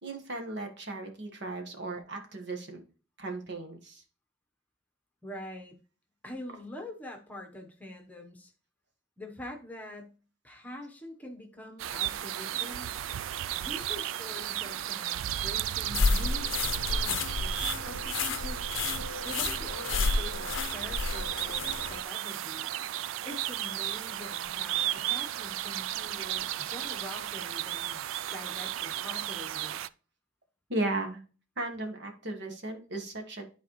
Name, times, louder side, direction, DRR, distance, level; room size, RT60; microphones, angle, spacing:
voice 1, 0.0-2.8 3.2-4.0 30.7-31.2 31.6-33.4, right 2 dB, 60° right, 3 dB, 1.4 m, -36 dB
voice 2, 5.2-5.8 6.2-8.5 9.2-10.1 10.4-12.9 13.5-18.6 19.2-22.7 23.3-28.1 28.3-29.8, left 1 dB, 10° left, 2 dB, 1.1 m, -45 dB
sound 1, 11.8-29.9, right 12 dB, 80° right, 0.3 m, -34 dB
sound 2, 15.9-22.0, left 4 dB, 75° left, 0.6 m, -31 dB
11.5 x 4.1 x 3.1 m, 0.36 s
head